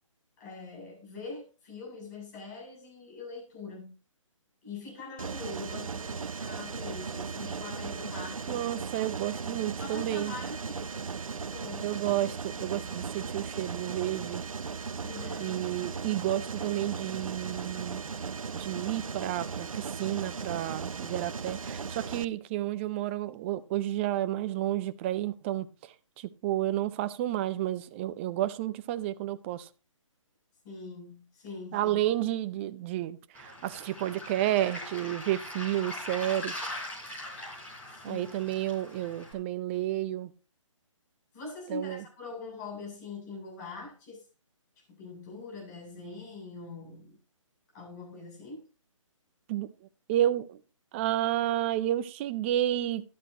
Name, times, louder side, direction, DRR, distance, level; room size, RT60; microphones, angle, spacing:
voice 1, 0.4-3.9 4.6-8.6 9.8-11.1 11.4-11.9 15.0-15.6 30.6-32.1 38.0-38.3 41.3-44.2 44.9-47.2 47.7-48.6, left 3 dB, 35° left, 8.0 m, -43 dB
Mechanisms, 5.2-22.2, right 5 dB, 85° right, 0.7 m, -37 dB
voice 2, 8.5-10.3 11.8-14.4 15.4-18.1 18.5-25.7 26.2-29.7 31.7-36.5 38.0-40.3 41.7-42.0 49.5-49.7 50.1-50.6 50.9-53.0, right 13 dB, 20° right, 0.6 m, -31 dB
Waves surf, 33.3-39.3, left 1 dB, 10° left, 4.1 m, -41 dB
13.5 x 11.5 x 2.9 m
hypercardioid pair, 150°, 17 cm